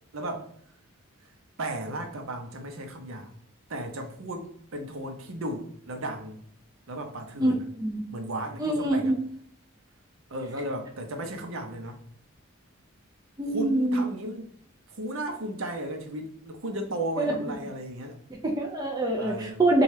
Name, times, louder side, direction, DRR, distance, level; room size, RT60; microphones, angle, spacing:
voice 1, 0.1-0.5 1.6-3.3 3.7-6.4 6.9-7.6 8.1-9.1 10.3-12.0 13.4-14.5 15.0-18.2 19.2-19.6, right 1 dB, 65° right, 0.6 m, -35 dB
voice 2, 8.6-9.2 13.4-14.1 17.2-17.3 18.3-19.8, right 2 dB, 15° right, 0.4 m, -25 dB
4.1 x 2.3 x 3.2 m
head